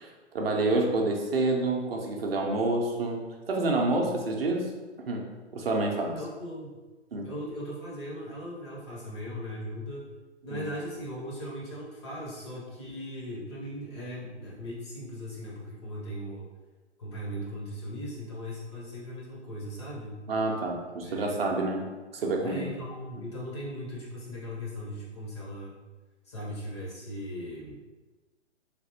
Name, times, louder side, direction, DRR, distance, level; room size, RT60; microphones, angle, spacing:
voice 1, 0.0-4.7 5.1-5.3 5.5-6.2 7.1-7.3 10.5-10.6 20.3-21.8 22.1-22.6, right 2 dB, 55° right, 1 dB, 0.6 m, -28 dB
voice 2, 6.1-6.7 7.2-10.1 10.4-16.5 17.0-20.2 21.0-21.6 22.4-25.8 26.3-27.8, equal, 25° left, -4 dB, 0.5 m, -38 dB
3.3 x 2.5 x 2.8 m, 1.2 s
figure-of-eight pair, 130°, 35 cm